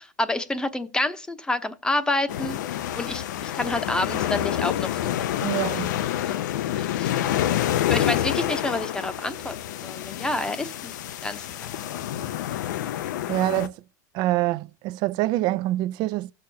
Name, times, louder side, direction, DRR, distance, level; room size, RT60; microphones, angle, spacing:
voice 1, 0.0-2.6 2.9-5.5 6.3-6.4 6.7-7.3 7.9-9.6 9.8-10.9 11.2-11.5 11.9-12.2, left 2 dB, 10° left, 0.9 m, -29 dB
sound 1, 2.3-13.7, left 12 dB, 85° left, 0.7 m, -28 dB
voice 2, 5.4-5.9 13.3-13.7 14.1-16.3, right 16 dB, 50° right, 0.5 m, -25 dB
16.0 x 6.4 x 2.8 m
supercardioid pair, 135°, 10 cm